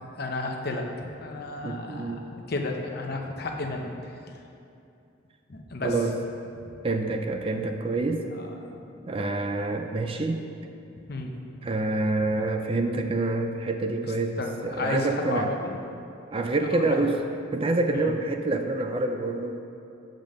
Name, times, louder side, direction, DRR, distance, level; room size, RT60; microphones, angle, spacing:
voice 1, 0.0-4.4 5.5-5.9 8.4-8.7 11.1-11.3 14.4-15.8 16.7-17.0 17.9-18.1, left 2 dB, 50° left, 2 dB, 0.8 m, -33 dB
voice 2, 1.6-2.3 5.8-6.2 6.8-8.2 9.1-10.4 11.6-15.5 16.3-17.2 17.5-19.5, right 2 dB, 30° right, 5 dB, 0.4 m, -27 dB
7.4 x 5.2 x 6.4 m, 2.6 s
head